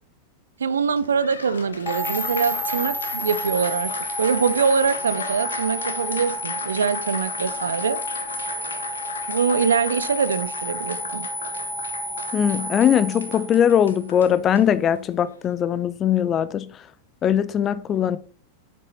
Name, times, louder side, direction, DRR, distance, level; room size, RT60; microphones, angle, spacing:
voice 1, 0.6-3.9 4.2-8.0 9.3-11.3, right 6 dB, 70° right, 0.6 m, -23 dB
Applause, 0.8-15.5, left 5 dB, 70° left, 1.1 m, -37 dB
sound 1, 1.9-14.0, equal, 5° left, 1.4 m, -31 dB
voice 2, 12.3-16.7 17.2-18.2, left 9 dB, 25° left, 0.7 m, -20 dB
7.6 x 7.5 x 4.2 m
figure-of-eight pair, 90°, 0 cm